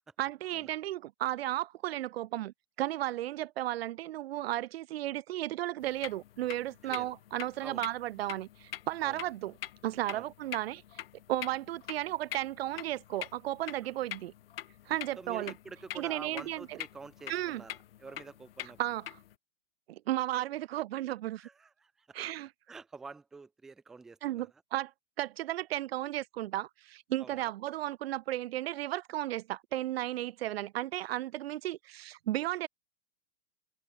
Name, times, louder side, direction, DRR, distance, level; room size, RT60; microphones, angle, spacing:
voice 1, 0.2-9.5 9.8-10.8 11.3-14.3 14.9-15.5 16.0-16.7 17.3-17.6 18.8-19.0 19.9-21.5 22.1-22.5 24.2-24.9 25.2-32.7, right 14 dB, 75° right, 0.5 m, -34 dB
sound 1, 5.8-19.3, left 12 dB, 70° left, 1.1 m, -45 dB
voice 2, 6.8-7.1 7.6-7.9 9.0-9.2 10.1-10.3 13.8-13.9 15.2-18.8 21.4-22.2 22.7-24.5 27.2-27.5, right 4 dB, ahead, 0.4 m, -48 dB
open air
supercardioid pair, 175°, 31 cm